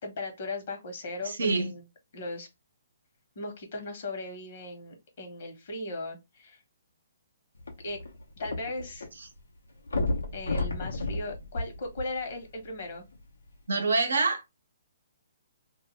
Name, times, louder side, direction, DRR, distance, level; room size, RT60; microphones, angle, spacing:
voice 1, 0.0-1.8 2.1-2.5 3.3-6.6 7.8-8.0 8.4-9.1 10.3-13.1, left 2 dB, 55° left, 1.1 m, -37 dB
voice 2, 1.2-1.7 13.7-14.5, right 3 dB, 80° right, 0.7 m, -26 dB
sound 1, 7.6-9.1 9.4-9.5 9.9-12.4 13.1-13.2, left 2 dB, 90° left, 0.8 m, -32 dB
2.4 x 2.1 x 3.0 m
hypercardioid pair, 135°, 0 cm